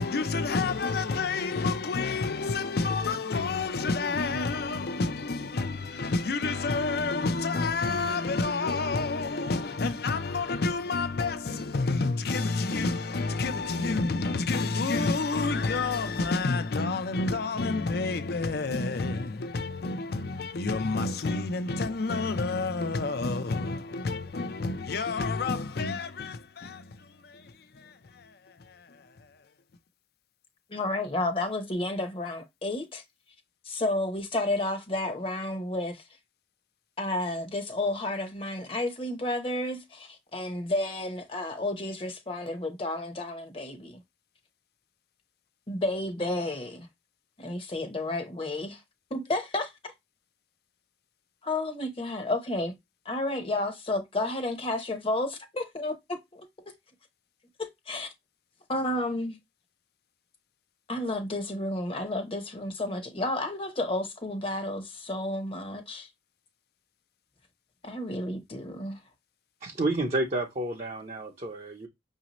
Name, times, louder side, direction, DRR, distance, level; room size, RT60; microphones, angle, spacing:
voice 1, 0.0-29.4, left 3 dB, 60° left, 0.5 m, -29 dB
voice 2, 30.7-33.0 33.6-36.0 37.0-44.0 45.7-46.9 47.4-48.8 49.1-49.7 51.4-52.8 53.0-56.4 56.7-56.8 57.6-58.1 58.7-59.4 60.9-66.1 67.8-69.0, left 2 dB, 30° left, 0.8 m, -31 dB
voice 3, 69.6-71.9, right 2 dB, 40° right, 0.7 m, -30 dB
5.9 x 2.8 x 2.9 m
head